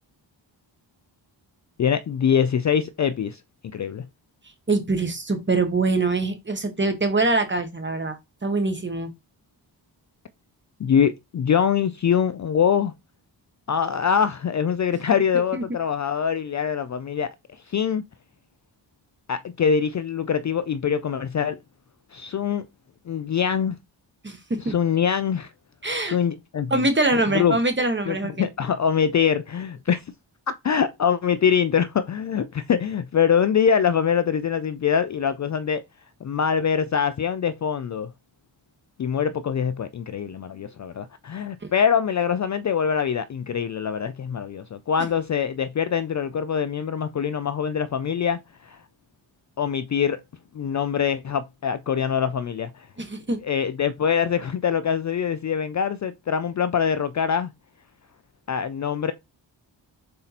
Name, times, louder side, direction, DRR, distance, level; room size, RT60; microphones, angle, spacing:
voice 1, 1.8-3.4 3.7-4.0 10.8-12.9 13.7-18.0 19.3-21.6 22.1-22.7 23.1-23.8 24.6-25.5 26.0-26.9 27.3-27.6 28.1-30.0 30.6-35.8 36.2-38.1 39.0-48.8 49.6-50.2 50.5-52.9 53.4-57.5 58.5-59.1, left 7 dB, 40° left, 0.4 m, -24 dB
voice 2, 4.7-9.1 15.5-15.6 24.2-24.7 25.8-26.2 26.7-28.5 41.6-41.7 53.0-53.4, right 2 dB, 25° right, 1.2 m, -24 dB
4.1 x 2.7 x 4.1 m
cardioid pair, 50°, 46 cm